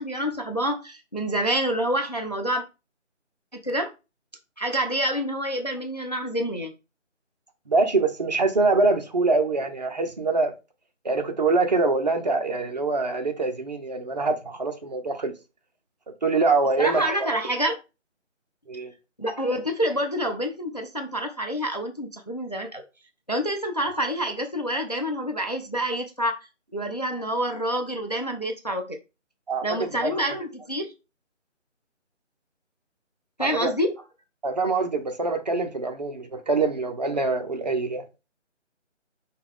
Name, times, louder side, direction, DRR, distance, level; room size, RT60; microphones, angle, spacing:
voice 1, 0.0-2.6 3.5-3.9 4.6-6.7 16.8-17.8 19.2-22.8 23.3-26.5 26.7-29.0 29.6-30.9 33.4-33.9, equal, 35° left, 0.4 m, -27 dB
voice 2, 7.7-10.5 11.0-15.3 16.2-17.3 18.7-18.9 29.5-30.1 33.4-33.7 34.4-38.0, right 3 dB, 35° right, 0.6 m, -24 dB
5.4 x 2.3 x 3.5 m
figure-of-eight pair, 155°, 37 cm